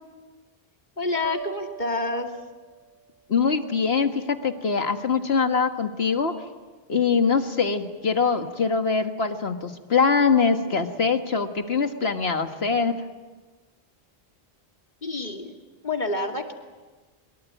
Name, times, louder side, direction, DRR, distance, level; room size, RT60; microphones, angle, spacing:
voice 1, 1.0-2.3 15.0-15.6 15.8-16.5, left 2 dB, 50° left, 3 dB, 2.6 m, -28 dB
sound 1, 1.2-3.1, right 4 dB, 15° left, 6.3 m, -39 dB
voice 2, 3.3-6.4 6.9-13.0, left 5 dB, 85° left, 6 dB, 2.0 m, -23 dB
24.0 x 22.5 x 9.2 m, 1.3 s
omnidirectional pair, 1.0 m